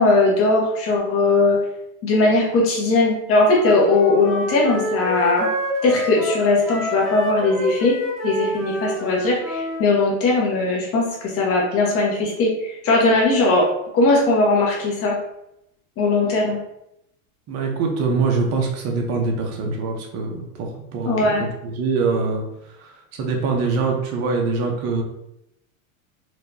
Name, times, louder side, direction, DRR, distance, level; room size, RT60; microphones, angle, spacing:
voice 1, 0.0-1.6 2.0-5.5 5.8-8.0 8.2-13.6 13.9-15.2 16.0-16.6 21.0-21.5, left 2 dB, 30° left, -3 dB, 1.3 m, -19 dB
Wind instrument woodwind instrument, 3.5-9.8, equal, ahead, 0.9 m, -28 dB
voice 2, 17.5-21.3 21.6-22.4 22.8-25.0, right 4 dB, 35° right, 1 dB, 0.9 m, -23 dB
4.5 x 2.8 x 2.7 m, 0.81 s
supercardioid pair, 140°, 42 cm